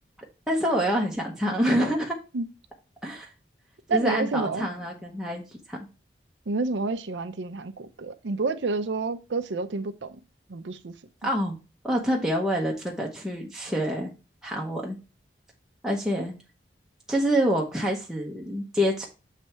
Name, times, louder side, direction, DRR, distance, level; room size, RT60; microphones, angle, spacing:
voice 1, 0.5-2.1 3.0-3.3 3.9-5.8 11.2-11.5 11.8-14.1 14.4-15.0 15.8-16.3 17.1-19.1, equal, 5° right, 0.8 m, -26 dB
voice 2, 3.9-4.7 6.5-10.2 10.5-11.0, right 3 dB, 80° right, 0.6 m, -29 dB
7.4 x 3.3 x 4.5 m
head